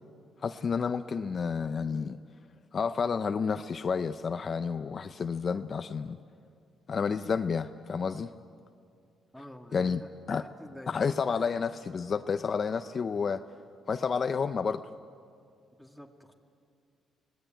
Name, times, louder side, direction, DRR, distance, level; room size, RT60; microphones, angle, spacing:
voice 1, 0.4-2.2 2.7-6.2 6.9-8.3 9.7-10.0 10.3-10.4 10.9-13.4 13.9-14.8, left 5 dB, 45° left, 10 dB, 0.6 m, -30 dB
voice 2, 9.3-11.0 15.8-16.3, equal, ahead, 3 dB, 2.3 m, -48 dB
24.5 x 18.5 x 9.1 m, 2.3 s
cardioid pair, 90°, 0 cm